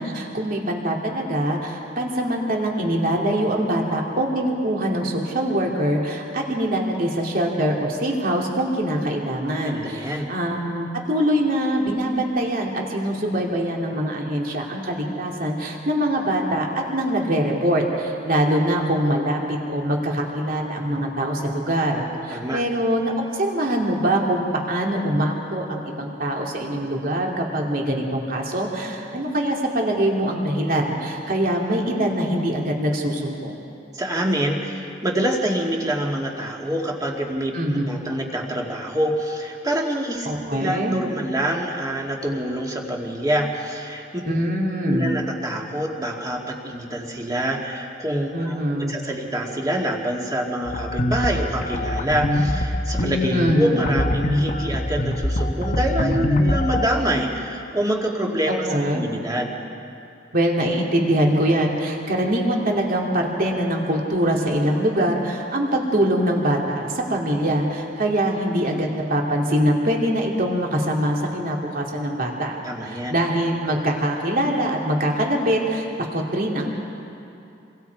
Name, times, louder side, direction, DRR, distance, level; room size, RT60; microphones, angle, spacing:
voice 1, 0.0-33.6 37.5-37.8 40.2-40.9 44.2-45.1 48.3-48.9 53.3-53.8 58.5-59.0 60.3-72.6 72.8-76.7, right 1 dB, 50° right, -1 dB, 2.8 m, -23 dB
voice 2, 9.6-10.3 22.3-22.6 33.9-44.2 44.9-58.7 58.9-59.5 72.6-73.2, right 1 dB, 20° right, -1 dB, 2.3 m, -26 dB
sound 1, 50.7-56.9, left 1 dB, 45° left, 1.3 m, -23 dB
29.0 x 22.5 x 4.7 m, 2.7 s
head